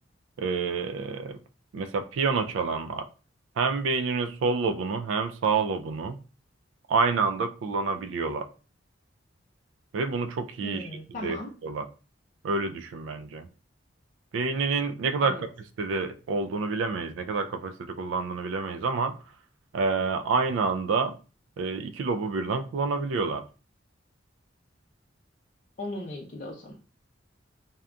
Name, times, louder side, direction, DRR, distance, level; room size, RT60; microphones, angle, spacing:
voice 1, 0.4-1.4 1.7-3.1 3.6-6.2 6.9-8.5 9.9-10.9 11.2-11.4 11.6-11.8 12.4-13.5 14.3-15.5 15.8-19.1 19.7-21.2 21.6-23.4, right 4 dB, 75° right, 9 dB, 0.3 m, -28 dB
voice 2, 10.6-11.5 15.2-15.4 25.8-26.7, left 1 dB, 40° left, -4 dB, 0.5 m, -37 dB
2.7 x 2.2 x 2.4 m, 0.35 s
head